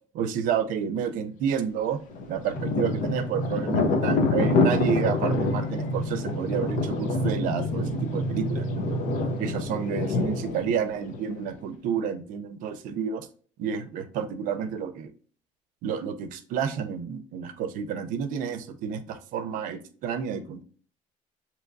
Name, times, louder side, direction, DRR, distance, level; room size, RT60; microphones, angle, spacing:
voice 1, 0.1-2.0 2.3-9.0 9.4-13.3 13.6-15.1 15.8-20.6, right 7 dB, 75° right, 9 dB, 0.6 m, -30 dB
Thunder, 2.1-11.6, left 4 dB, 70° left, 0.6 m, -28 dB
sound 1, 2.5-10.7, right 1 dB, 5° left, 0.5 m, -31 dB
6.7 x 2.9 x 2.6 m, 0.43 s
cardioid pair, 170°, 14 cm